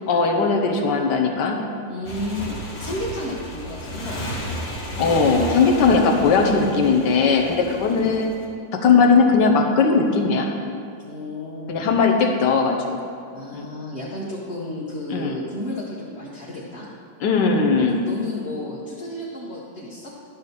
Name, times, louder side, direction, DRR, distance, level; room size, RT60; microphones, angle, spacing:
voice 1, 0.1-1.6 5.0-8.3 8.7-10.5 11.7-12.8 13.5-13.6 15.1-15.4 17.2-18.1, left 4 dB, 70° left, 2 dB, 1.5 m, -18 dB
voice 2, 0.8-1.1 1.9-4.4 7.8-8.1 11.0-11.9 13.3-16.9 17.8-20.1, left 1 dB, 40° left, -6 dB, 1.1 m, -32 dB
Motorcycle, 2.1-8.4, equal, 85° left, 2.2 m, -33 dB
11.0 x 4.3 x 6.7 m, 2.3 s
omnidirectional pair, 2.0 m